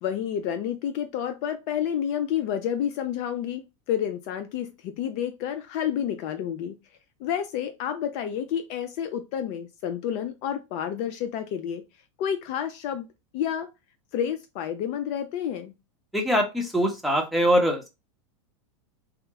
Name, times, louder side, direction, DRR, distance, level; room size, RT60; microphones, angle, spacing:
voice 1, 0.0-6.8 7.2-11.8 12.2-13.1 13.3-13.7 14.1-15.7, left 9 dB, 50° left, 0.4 m, -29 dB
voice 2, 16.1-17.9, equal, ahead, 0.8 m, -23 dB
2.9 x 2.0 x 3.5 m
supercardioid pair, 125°, 16 cm